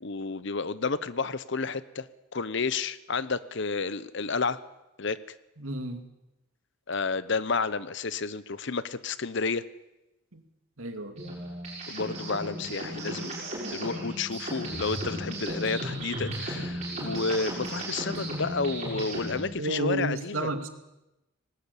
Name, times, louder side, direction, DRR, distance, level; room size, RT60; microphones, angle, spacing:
voice 1, 0.0-2.1 2.3-4.6 5.0-5.2 6.9-9.7 11.9-13.3 13.7-20.5, left 4 dB, 60° left, 16 dB, 0.9 m, -31 dB
voice 2, 5.6-6.0 10.3-10.4 10.8-11.1 19.6-20.7, right 1 dB, 85° right, 6 dB, 2.4 m, -31 dB
sound 1, 11.2-19.5, right 1 dB, 35° right, 7.2 m, -35 dB
19.0 x 19.0 x 8.4 m, 0.95 s
head